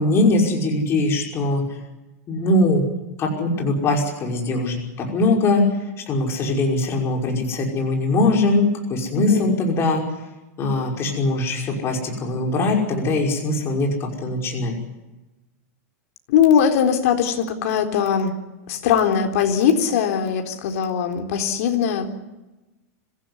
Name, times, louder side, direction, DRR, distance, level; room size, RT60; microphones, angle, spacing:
voice 1, 0.0-1.6 2.3-2.8 3.2-5.6 6.1-10.0 10.6-14.7, left 2 dB, 30° left, 1 dB, 5.6 m, -21 dB
voice 2, 9.1-9.5 16.3-18.3 18.7-22.1, left 8 dB, 65° left, 5 dB, 4.0 m, -20 dB
26.0 x 16.0 x 9.8 m, 1.1 s
supercardioid pair, 140°, 9 cm